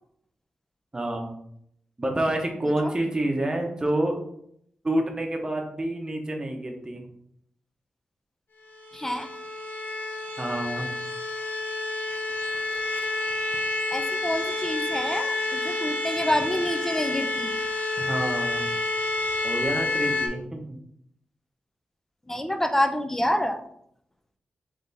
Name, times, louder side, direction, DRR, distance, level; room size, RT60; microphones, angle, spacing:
voice 1, 0.9-1.3 2.0-4.2 4.8-7.1 10.4-10.9 18.0-18.7 19.4-20.8, right 1 dB, 20° right, 2 dB, 0.9 m, -28 dB
sound 1, 8.7-20.3, left 2 dB, 70° left, 0.7 m, -29 dB
voice 2, 8.9-9.3 13.9-17.6 22.3-23.6, left 1 dB, 10° left, 7 dB, 0.5 m, -27 dB
3.4 x 3.3 x 4.1 m, 0.71 s
wide cardioid pair, 95°, 3 cm